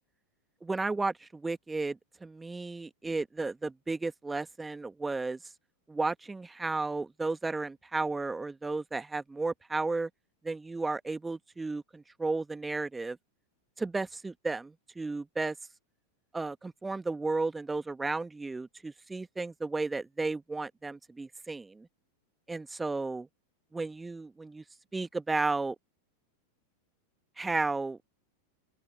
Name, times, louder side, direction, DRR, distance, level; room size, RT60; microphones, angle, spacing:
voice 1, 0.6-5.4 5.9-10.1 10.4-13.2 13.8-15.5 16.3-21.9 22.5-23.3 23.7-24.6 24.9-25.8 27.4-28.1, right 3 dB, 10° right, 1.5 m, -33 dB
open air
figure-of-eight pair, 90°, 0 cm